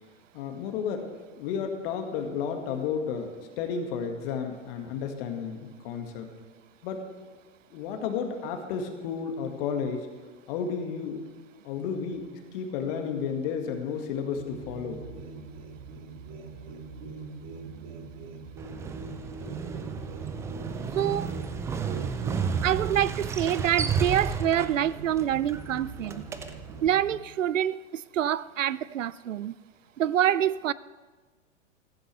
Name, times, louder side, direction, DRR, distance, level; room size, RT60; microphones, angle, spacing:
voice 1, 0.3-1.1 1.4-3.3 3.6-6.3 6.8-7.0 7.7-10.1 10.5-11.2 11.6-15.0, left 6 dB, 50° left, 2.0 m, -32 dB
sound 1, 14.3-27.2, right 4 dB, 50° right, 2.4 m, -42 dB
Motorcycle, 18.6-26.9, right 6 dB, 10° right, 0.3 m, -33 dB
voice 2, 20.9-21.3 22.6-26.2 26.8-29.5 30.0-30.7, right 10 dB, 90° right, 0.5 m, -26 dB
15.5 x 14.5 x 3.4 m
hypercardioid pair, 110°, 37 cm